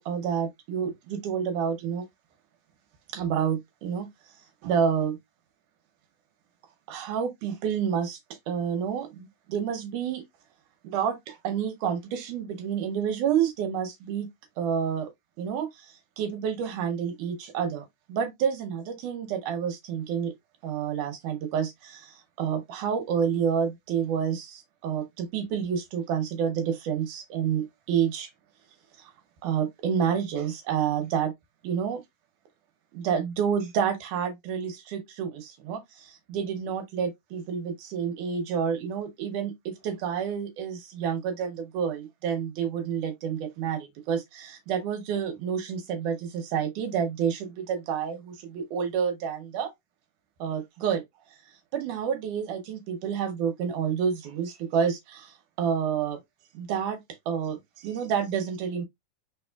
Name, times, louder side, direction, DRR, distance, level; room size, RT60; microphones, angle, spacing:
voice 1, 0.0-2.1 3.1-4.1 4.6-5.2 6.9-8.2 8.5-10.2 10.8-14.3 14.6-15.1 15.4-20.3 20.6-28.3 29.0-29.1 29.4-31.3 31.6-32.0 32.9-49.7 50.4-51.0 51.7-56.2 56.5-57.0 57.3-58.8, right 7 dB, 80° right, 2.2 m, -29 dB
4.3 x 3.4 x 2.2 m
omnidirectional pair, 3.6 m